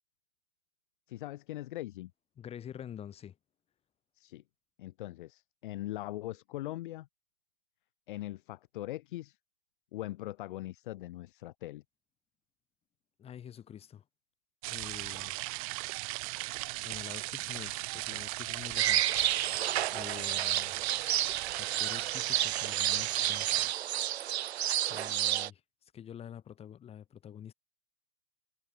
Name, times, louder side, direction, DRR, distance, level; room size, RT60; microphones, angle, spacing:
voice 1, 1.1-2.1 4.2-4.4 4.8-7.1 8.1-9.4 9.9-11.8, left 16 dB, 40° left, 1.4 m, -41 dB
voice 2, 2.4-3.3 13.2-14.0 14.7-15.4 16.8-19.0 19.9-20.8 21.6-24.2 24.9-25.6 25.9-27.5, left 9 dB, 15° left, 6.0 m, -47 dB
sound 1, 14.6-23.7, right 26 dB, 25° right, 1.2 m, -38 dB
sound 2, 18.8-25.5, right 12 dB, 50° right, 0.8 m, -30 dB
hypercardioid pair, 150°, 41 cm